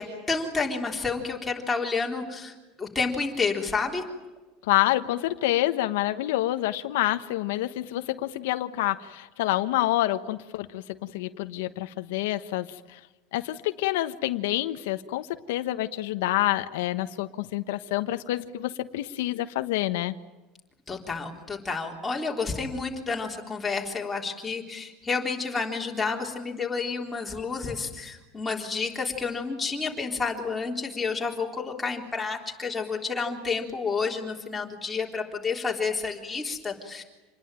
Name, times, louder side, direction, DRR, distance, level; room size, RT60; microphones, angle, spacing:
voice 1, 0.0-4.0 20.9-37.0, left 4 dB, 10° left, -1 dB, 3.7 m, -30 dB
voice 2, 4.6-10.8 11.1-13.0 13.3-20.1, left 15 dB, 80° left, 9 dB, 1.2 m, -27 dB
27.5 x 20.5 x 9.1 m, 1.1 s
cardioid pair, 165°, 0 cm